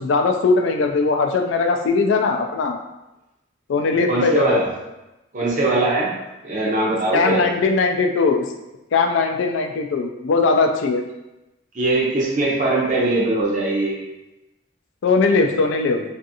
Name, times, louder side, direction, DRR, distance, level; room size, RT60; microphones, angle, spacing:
voice 1, 0.0-2.8 3.7-4.6 7.1-8.4 8.9-11.0 15.0-16.0, left 4 dB, 70° left, 5 dB, 0.3 m, -19 dB
voice 2, 3.9-4.7 5.3-6.1 6.4-7.5 11.7-14.0, right 2 dB, 40° right, -3 dB, 0.5 m, -21 dB
2.5 x 2.4 x 2.7 m, 0.98 s
head